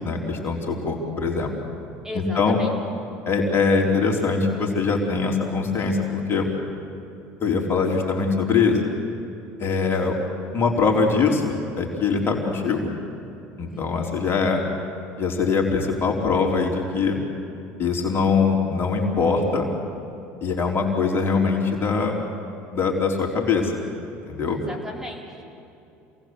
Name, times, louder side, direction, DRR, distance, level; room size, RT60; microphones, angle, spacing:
voice 1, 0.0-1.5 2.1-2.6 3.3-6.5 7.4-8.8 9.6-10.1 10.5-12.9 13.6-14.6 15.2-17.2 17.8-19.7 20.4-22.2 22.7-23.7 24.3-24.6, left 4 dB, 40° left, 0 dB, 4.1 m, -22 dB
voice 2, 2.0-2.7 13.7-14.2 24.5-25.4, left 1 dB, 10° right, 0 dB, 4.0 m, -36 dB
28.0 x 19.0 x 7.9 m, 2.7 s
hypercardioid pair, 80°, 6 cm